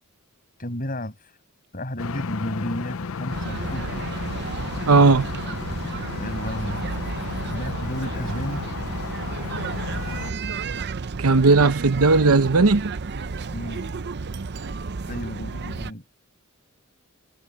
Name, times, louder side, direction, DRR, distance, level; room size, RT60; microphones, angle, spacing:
voice 1, 0.6-1.2 1.7-4.1 6.1-6.9 7.5-8.6 13.5-13.9 15.1-16.0, left 1 dB, 40° left, 7.1 m, -32 dB
sound 1, 2.0-10.3, left 5 dB, 65° left, 0.6 m, -33 dB
sound 2, 3.3-15.9, right 4 dB, 50° right, 0.6 m, -32 dB
voice 2, 4.9-5.3 11.2-12.9, right 3 dB, 90° right, 0.9 m, -16 dB
head